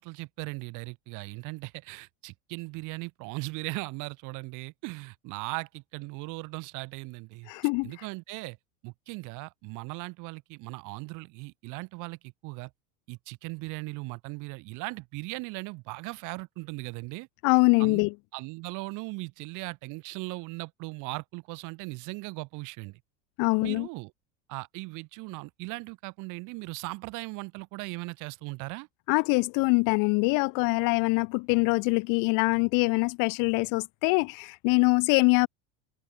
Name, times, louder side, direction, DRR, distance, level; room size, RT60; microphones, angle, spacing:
voice 1, 0.0-7.5 7.8-8.6 8.8-12.7 13.1-17.3 17.8-18.0 18.3-23.0 23.6-24.1 24.5-28.9, right 25 dB, 55° right, 0.6 m, -38 dB
voice 2, 7.5-7.9 17.4-18.1 23.4-23.9 29.1-35.5, left 31 dB, 55° left, 0.5 m, -24 dB
supercardioid pair, 115°, 38 cm